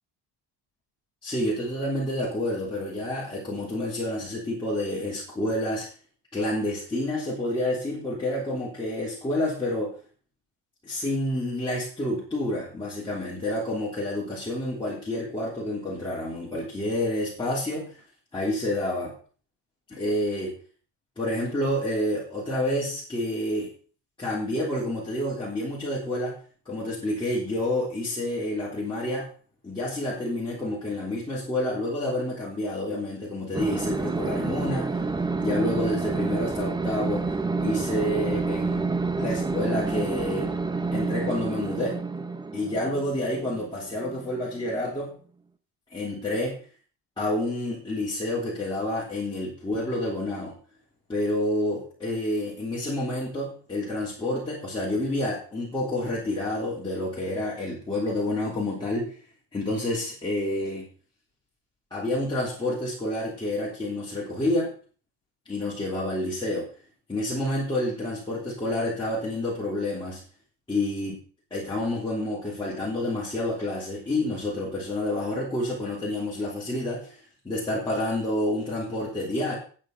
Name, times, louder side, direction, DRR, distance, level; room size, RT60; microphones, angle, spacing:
voice 1, 1.2-5.9 6.3-10.0 10.8-18.0 18.3-19.1 19.9-20.6 21.2-23.7 24.2-26.4 26.6-29.3 29.6-35.0 35.4-37.3 37.6-38.8 39.2-40.5 40.9-42.0 42.5-45.1 45.9-46.6 47.2-50.6 51.1-59.2 59.5-60.9 61.9-64.7 65.5-66.7 67.1-70.2 70.7-71.2 71.5-77.2 77.4-79.5, left 1 dB, 10° left, -8 dB, 3.2 m, -29 dB
sound 1, 33.5-44.6, right 3 dB, 10° right, 0.7 m, -29 dB
9.4 x 8.8 x 5.5 m, 0.40 s
cardioid pair, 170°, 41 cm